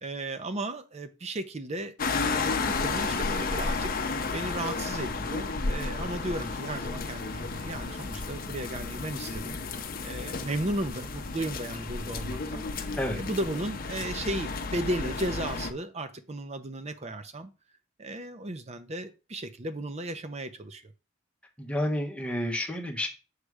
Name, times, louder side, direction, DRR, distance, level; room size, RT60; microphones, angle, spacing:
voice 1, 0.0-2.0 2.2-3.9 4.3-9.6 10.0-12.9 13.2-17.5 18.0-20.9, right 1 dB, 35° right, 0.7 m, -35 dB
sound 1, 2.0-15.7, left 4 dB, 50° left, 0.7 m, -32 dB
voice 2, 21.6-23.1, left 1 dB, 5° left, 1.2 m, -30 dB
6.5 x 3.3 x 4.8 m
head